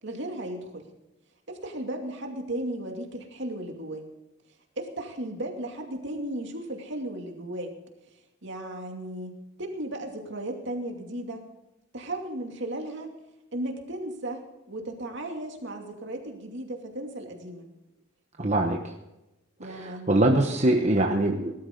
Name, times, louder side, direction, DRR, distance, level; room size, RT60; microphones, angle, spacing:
voice 1, 0.0-0.9 1.5-4.0 4.8-7.7 8.1-11.4 11.9-13.1 13.5-17.7 19.6-20.4, right 1 dB, 60° right, 2 dB, 2.6 m, -35 dB
voice 2, 18.4-18.9 19.7-21.5, right 1 dB, 35° right, 2 dB, 1.1 m, -23 dB
19.5 x 12.5 x 3.9 m, 0.95 s
head